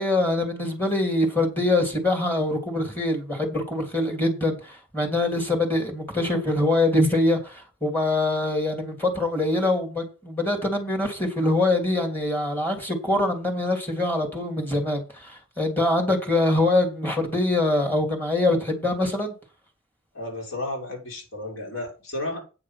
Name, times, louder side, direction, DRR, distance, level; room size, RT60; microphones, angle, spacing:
voice 1, 0.0-19.3, left 2 dB, 10° left, 3.0 m, -24 dB
voice 2, 20.1-22.4, left 2 dB, 70° left, 5.8 m, -32 dB
8.7 x 7.2 x 5.9 m
head